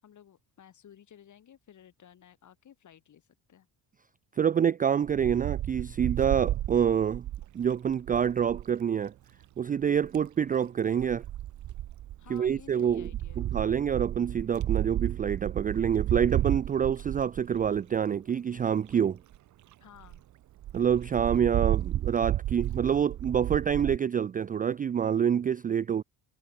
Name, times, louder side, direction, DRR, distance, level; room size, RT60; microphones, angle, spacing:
voice 1, 0.0-3.7 12.2-13.5 19.8-20.2, left 9 dB, 40° left, 5.5 m, -54 dB
voice 2, 4.4-7.3 7.5-9.1 9.6-11.2 12.3-13.1 13.4-19.2 20.7-26.0, right 8 dB, 20° right, 0.3 m, -27 dB
Wind, 5.1-8.7 9.8-10.3 11.0-18.0 18.6-18.7 18.9-19.0 19.3-19.4 19.7-19.8 20.0-20.2 20.6-24.0, right 13 dB, 40° right, 0.7 m, -32 dB
cardioid pair, 160°, 45 cm